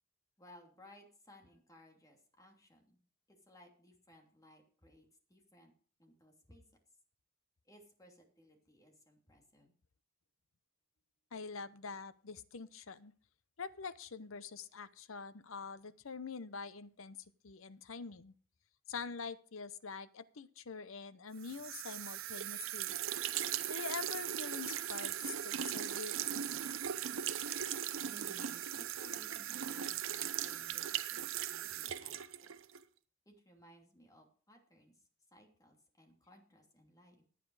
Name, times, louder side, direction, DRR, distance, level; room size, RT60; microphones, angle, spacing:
voice 1, 0.4-3.0 3.3-5.7 6.0-6.6 7.6-9.7 28.1-32.5 33.3-35.0 35.3-37.2, equal, 15° left, 2 dB, 2.9 m, -61 dB
voice 2, 11.3-13.1 13.6-17.2 17.4-18.3 18.9-22.9 23.7-26.4, left 5 dB, 75° left, 15 dB, 0.8 m, -45 dB
sound 1, 21.4-32.8, right 10 dB, 70° right, 0.7 m, -39 dB
12.5 x 9.4 x 4.9 m, 0.43 s
head